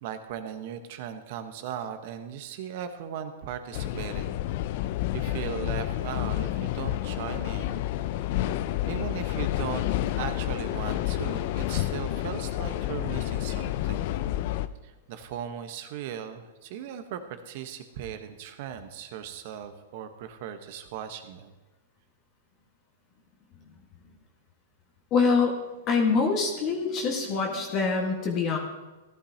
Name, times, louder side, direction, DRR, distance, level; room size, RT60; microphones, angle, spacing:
voice 1, 0.0-4.3 5.1-7.9 8.9-9.9 10.2-14.1 14.8-21.5, right 9 dB, 55° right, 8 dB, 1.2 m, -38 dB
sound 1, 3.7-14.7, left 13 dB, 55° left, 0.5 m, -29 dB
voice 2, 25.1-25.6 25.9-28.6, left 4 dB, 35° left, 0 dB, 1.7 m, -24 dB
14.5 x 11.5 x 2.9 m, 1.2 s
hypercardioid pair, 125°, 0 cm